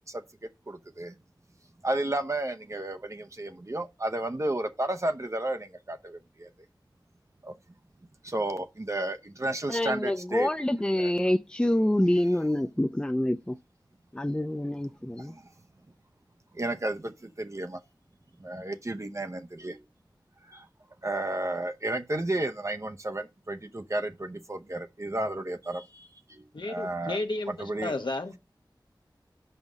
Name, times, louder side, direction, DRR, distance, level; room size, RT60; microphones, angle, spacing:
voice 1, 0.7-1.1 1.8-6.2 8.2-10.5 11.0-11.1 16.6-17.1 17.4-17.8 18.4-19.8 21.0-26.1 26.7-27.2 27.5-27.9, right 1 dB, 40° right, 0.7 m, -32 dB
voice 2, 9.7-13.6 14.1-15.3, left 1 dB, 10° left, 0.5 m, -26 dB
voice 3, 26.5-28.4, left 2 dB, 70° left, 1.2 m, -33 dB
5.7 x 5.2 x 6.0 m
wide cardioid pair, 45°, 8 cm